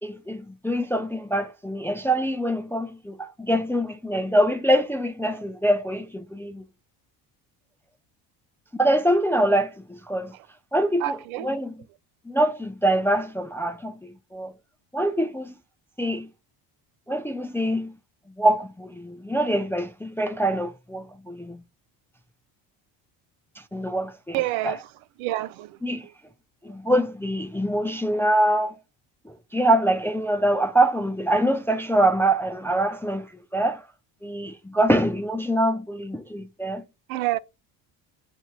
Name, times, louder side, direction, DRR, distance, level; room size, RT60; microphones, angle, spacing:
voice 1, 0.0-6.6 8.8-10.3 10.7-11.2 11.4-11.7 12.3-14.5 14.9-15.5 16.0-16.3 17.1-18.0 18.4-21.6 23.6-24.4 24.6-24.7 25.8-26.1 26.6-28.8 29.3-33.8 34.2-36.8, right 1 dB, 5° left, 0.3 m, -24 dB
voice 2, 11.0-11.5 24.3-24.9 25.2-25.8 26.7-26.8 37.1-37.4, right 16 dB, 70° right, 0.6 m, -28 dB
7.9 x 2.8 x 2.2 m
supercardioid pair, 75°, 49 cm